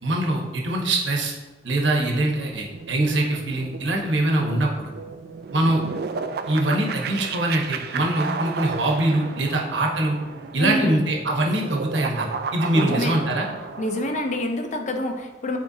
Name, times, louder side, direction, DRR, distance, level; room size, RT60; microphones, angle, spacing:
voice 1, 0.0-1.3 1.6-4.9 5.5-5.8 6.5-10.2 10.5-13.5, right 1 dB, 85° right, 0 dB, 1.1 m, -23 dB
sound 1, 1.9-14.4, right 5 dB, 60° right, 0.4 m, -34 dB
voice 2, 10.6-11.0 12.7-13.2 13.8-15.6, left 1 dB, 40° left, 5 dB, 0.6 m, -26 dB
8.7 x 4.4 x 2.8 m, 1.2 s
head